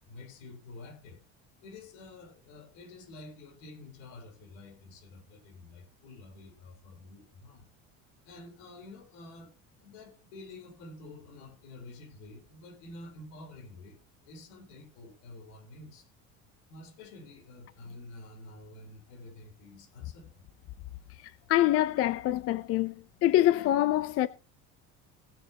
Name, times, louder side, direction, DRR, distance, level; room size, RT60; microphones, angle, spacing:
voice 1, 0.1-1.2 1.6-7.7 8.2-9.5 9.8-16.1 16.7-20.4, left 2 dB, 90° left, 4.1 m, -49 dB
voice 2, 21.5-22.9 23.2-24.3, left 14 dB, 45° left, 0.6 m, -25 dB
18.0 x 9.6 x 2.9 m
cardioid pair, 145°, 32 cm